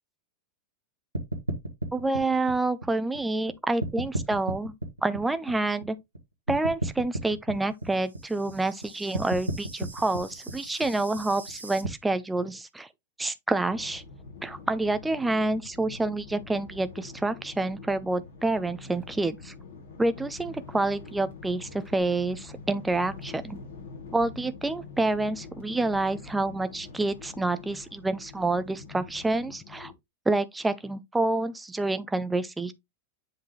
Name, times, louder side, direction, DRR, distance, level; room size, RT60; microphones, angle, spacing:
sound 1, 1.1-3.5 3.8-6.2 6.5-11.9, right 2 dB, 80° right, 1.3 m, -34 dB
voice 1, 1.9-4.7 5.0-6.0 6.5-12.9 13.2-14.0 14.4-19.5 20.0-23.6 24.1-29.9 30.3-32.7, right 2 dB, 10° right, 0.7 m, -28 dB
sound 2, 13.7-29.9, left 4 dB, 65° left, 2.2 m, -45 dB
7.7 x 3.9 x 3.1 m
figure-of-eight pair, 90°, 0 cm